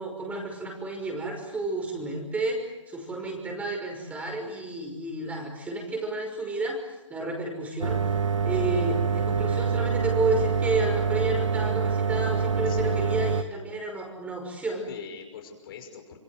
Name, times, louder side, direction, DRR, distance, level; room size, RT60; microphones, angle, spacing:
voice 1, 0.0-6.8 7.1-8.0 8.4-14.9, right 2 dB, 10° right, 2 dB, 5.8 m, -31 dB
sound 1, 7.8-13.4, right 5 dB, 80° right, 1.6 m, -26 dB
voice 2, 12.7-13.4 14.9-16.2, left 6 dB, 50° left, 4 dB, 5.9 m, -42 dB
27.0 x 22.5 x 8.0 m, 1.1 s
hypercardioid pair, 140°, 16 cm